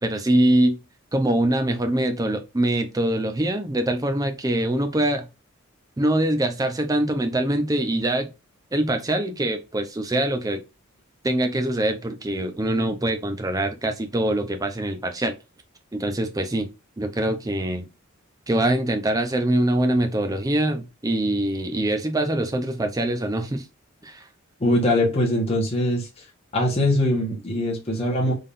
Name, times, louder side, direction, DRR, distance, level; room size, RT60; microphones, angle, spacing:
voice 1, 0.0-0.8 1.1-5.3 6.0-8.3 8.7-10.6 11.2-15.3 15.9-16.7 17.0-17.9 18.5-23.6 24.0-24.2, right 1 dB, 15° right, 0.5 m, -23 dB
voice 2, 24.6-26.2 26.5-28.3, left 1 dB, 30° left, 1.2 m, -22 dB
3.8 x 3.5 x 2.5 m
head